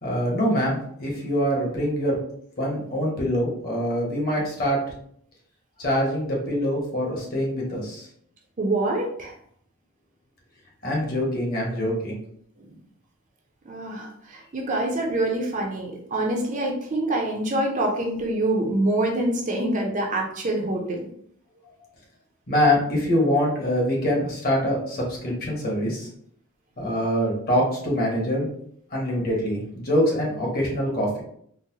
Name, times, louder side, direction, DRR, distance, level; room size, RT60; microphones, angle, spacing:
voice 1, 0.0-2.1 2.6-4.8 5.8-8.1 10.8-12.2 22.5-26.1 26.8-28.5 28.9-31.2, equal, 40° left, -2 dB, 1.0 m, -24 dB
voice 2, 8.6-9.3 12.6-12.7 13.7-21.1, right 1 dB, 35° right, 1 dB, 0.5 m, -26 dB
3.9 x 2.1 x 2.7 m, 0.66 s
head